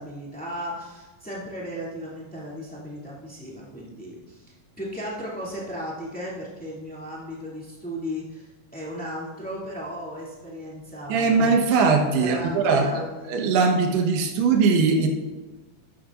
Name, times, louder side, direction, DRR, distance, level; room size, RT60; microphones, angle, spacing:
voice 1, 0.0-4.5 4.8-11.4 12.2-13.5, equal, 5° left, -6 dB, 1.5 m, -36 dB
voice 2, 11.1-13.0 13.3-15.1, right 4 dB, 85° right, 2 dB, 3.3 m, -20 dB
12.5 x 11.5 x 2.5 m, 1.3 s
omnidirectional pair, 4.5 m